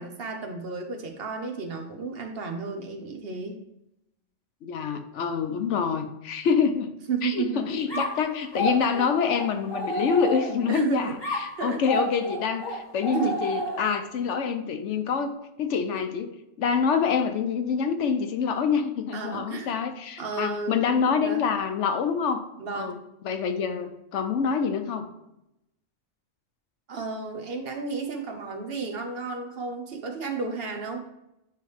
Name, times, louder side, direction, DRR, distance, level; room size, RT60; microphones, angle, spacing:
voice 1, 0.0-3.6 7.1-8.0 10.7-11.2 11.6-12.0 13.1-13.4 19.1-19.8 20.2-20.9 21.2-21.4 22.6-23.0 26.9-31.1, right 4 dB, 55° right, 4 dB, 1.0 m, -32 dB
voice 2, 4.6-6.9 7.2-16.3 16.6-22.4 22.7-22.9 23.2-25.1, left 6 dB, 75° left, 7 dB, 1.0 m, -26 dB
sound 1, 7.9-10.8 11.2-14.1, equal, 20° left, 1.1 m, -31 dB
9.3 x 3.3 x 3.3 m, 0.86 s
omnidirectional pair, 1.3 m